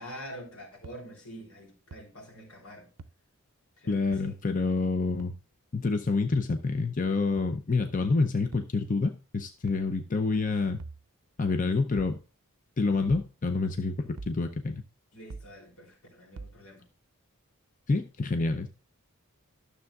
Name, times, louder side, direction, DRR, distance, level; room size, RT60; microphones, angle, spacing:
voice 1, 0.0-2.9 3.8-4.4 15.1-16.9, equal, 80° left, 3.4 m, -46 dB
sound 1, 0.8-0.9 1.9-2.0 3.0-3.1 4.1-4.3 5.2-5.4 6.3-6.5 7.4-7.6 8.5-8.7 9.7-9.9 10.8-11.0 12.0-12.2 13.1-13.3 14.2-14.4 15.3-15.5 16.4-16.6, right 3 dB, 85° right, 0.6 m, -43 dB
voice 2, 3.9-5.3 5.7-10.8 11.4-12.2 12.8-14.8 17.9-18.7, left 3 dB, 35° left, 0.5 m, -27 dB
12.5 x 6.9 x 2.4 m
head